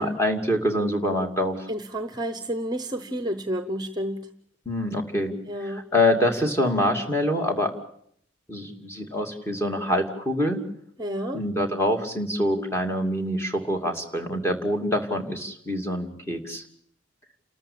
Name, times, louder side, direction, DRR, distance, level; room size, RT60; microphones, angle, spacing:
voice 1, 0.0-1.7 4.7-5.3 5.6-7.8 8.5-10.6 11.3-16.6, left 1 dB, 15° left, 3 dB, 2.6 m, -25 dB
voice 2, 1.7-4.3 5.5-5.8 11.0-11.4, equal, 20° right, 10 dB, 1.0 m, -30 dB
29.0 x 13.5 x 8.7 m, 0.67 s
head